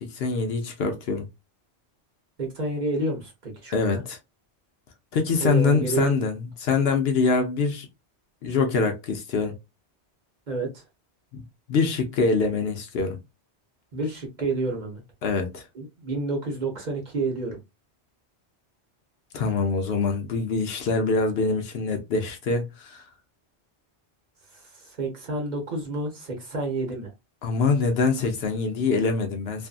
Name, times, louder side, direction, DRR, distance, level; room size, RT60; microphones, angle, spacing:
voice 1, 0.0-1.3 3.7-4.2 5.1-7.9 8.4-9.6 11.3-11.4 11.7-13.2 15.2-15.6 19.3-23.0 27.4-29.7, left 4 dB, 65° left, 0.8 m, -24 dB
voice 2, 2.4-4.0 5.4-6.1 10.5-10.8 13.9-15.0 15.7-17.6 24.5-27.1, right 2 dB, 45° right, 0.9 m, -29 dB
2.6 x 2.4 x 2.4 m
omnidirectional pair, 1.2 m